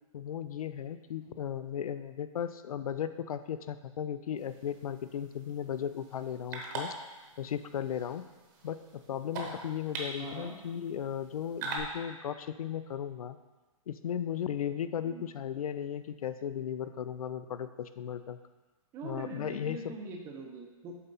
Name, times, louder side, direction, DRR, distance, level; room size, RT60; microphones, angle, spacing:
voice 1, 0.1-6.9 7.4-8.2 8.6-13.4 13.9-18.4 19.0-20.0, left 9 dB, 85° left, 12 dB, 0.5 m, -36 dB
sound 1, 4.4-11.8, right 3 dB, 30° right, 1.0 m, -43 dB
voice 2, 10.2-10.5 15.0-15.2 18.9-21.0, right 4 dB, 15° right, 1 dB, 0.6 m, -43 dB
7.5 x 4.3 x 4.0 m, 1.2 s
hypercardioid pair, 160°, 18 cm